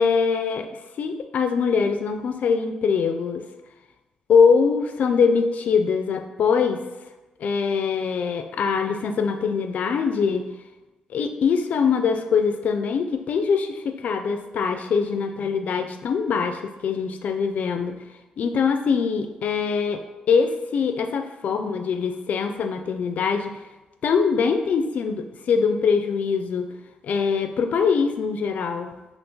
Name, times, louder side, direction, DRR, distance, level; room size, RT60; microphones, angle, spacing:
voice 1, 0.0-3.5 4.3-6.9 7.4-10.5 11.1-18.0 18.4-23.6 24.0-26.7 27.0-28.9, left 5 dB, 65° left, 7 dB, 0.3 m, -23 dB
2.7 x 2.4 x 3.5 m, 1.1 s
supercardioid pair, 55°, 3 cm